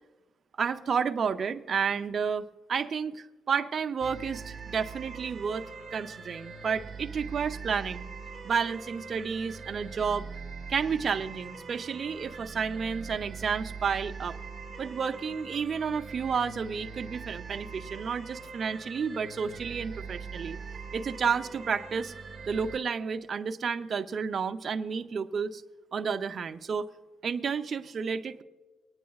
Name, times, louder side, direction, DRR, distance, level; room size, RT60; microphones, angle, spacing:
voice 1, 0.6-8.0 8.4-10.3 10.7-14.4 14.8-20.6 20.9-22.1 22.5-25.6 25.9-26.8 27.2-28.4, right 6 dB, 50° right, 7 dB, 0.6 m, -31 dB
sound 1, 4.0-22.8, right 5 dB, 30° right, 1.3 m, -42 dB
23.0 x 9.3 x 2.4 m, 1.2 s
cardioid pair, 90°, 0 cm